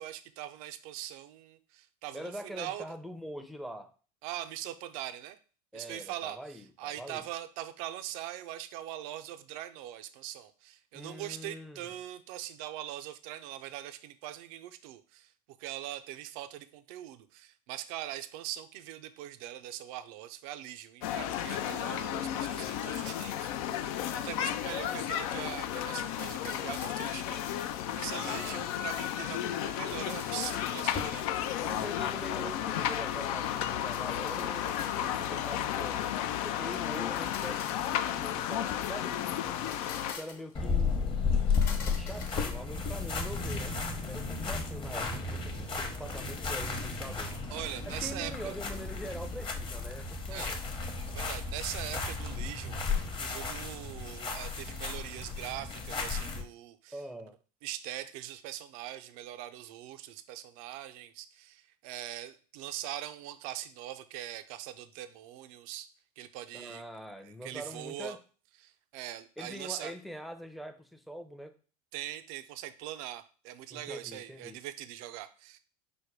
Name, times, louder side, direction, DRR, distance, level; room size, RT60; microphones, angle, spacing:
voice 1, 0.0-2.8 4.2-5.4 5.7-15.3 15.6-23.8 24.1-31.6 47.5-48.6 50.3-50.6 51.1-57.0 57.6-65.9 66.2-66.8 67.2-68.2 68.6-69.9 71.9-75.6, right 13 dB, 65° right, 11 dB, 0.5 m, -42 dB
voice 2, 2.1-3.9 5.7-7.2 10.9-11.9 28.1-28.6 31.6-36.1 36.4-39.8 40.2-41.2 41.9-43.8 44.1-47.3 47.9-50.6 56.9-57.3 66.5-68.2 69.4-71.5 73.7-74.6, equal, ahead, 6 dB, 0.6 m, -44 dB
sound 1, 21.0-40.1, left 11 dB, 65° left, 0.5 m, -33 dB
sound 2, 26.1-27.2 29.6-31.3 31.6-32.2 33.7-35.3 36.9-39.0 39.5-40.6 41.4-43.2, left 5 dB, 45° left, 1.1 m, -44 dB
sound 3, 40.5-56.4, left 4 dB, 25° left, 0.9 m, -34 dB
5.1 x 2.1 x 4.5 m, 0.39 s
hypercardioid pair, 95°, 20 cm